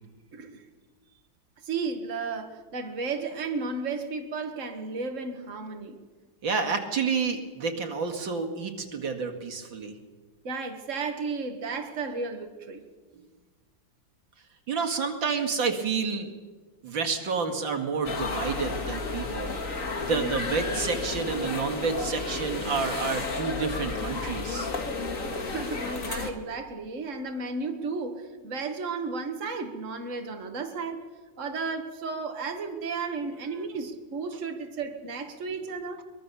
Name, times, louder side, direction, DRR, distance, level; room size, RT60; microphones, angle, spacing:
voice 1, 0.3-0.6 1.6-6.0 10.4-12.8 25.3-31.0 31.4-36.1, right 4 dB, 40° right, 2.1 m, -33 dB
voice 2, 6.4-9.9 14.7-16.3 16.8-19.6 20.0-24.7, right 5 dB, 90° right, 2.8 m, -29 dB
sound 1, 18.0-26.3, left 3 dB, 45° left, 2.3 m, -32 dB
23.0 x 22.5 x 7.0 m
omnidirectional pair, 2.0 m